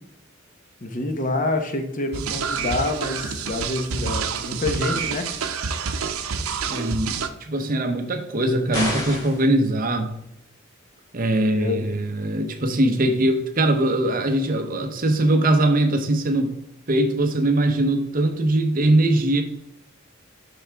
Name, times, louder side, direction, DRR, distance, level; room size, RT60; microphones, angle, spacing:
voice 1, 0.8-5.3 11.5-11.8, left 2 dB, 40° left, 6 dB, 0.9 m, -27 dB
sound 1, 2.1-7.3, right 5 dB, 90° right, 0.6 m, -28 dB
voice 2, 6.7-10.1 11.1-16.6 16.9-19.4, right 1 dB, 40° right, 6 dB, 0.8 m, -21 dB
sound 2, 8.7-9.5, equal, 20° left, 2.1 m, -27 dB
7.8 x 6.0 x 3.4 m, 0.78 s
head